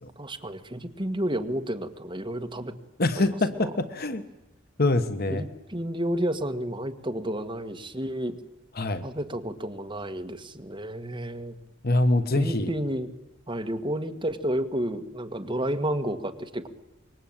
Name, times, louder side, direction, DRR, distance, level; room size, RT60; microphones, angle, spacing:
voice 1, 0.2-2.7 3.2-3.7 5.3-8.4 9.0-11.6 12.4-13.1 13.5-16.7, right 1 dB, 25° right, 7 dB, 1.8 m, -31 dB
voice 2, 3.0-4.2 4.8-5.4 8.8-9.1 11.8-12.7, left 2 dB, 50° left, 10 dB, 1.3 m, -24 dB
25.5 x 22.5 x 8.9 m, 0.98 s
head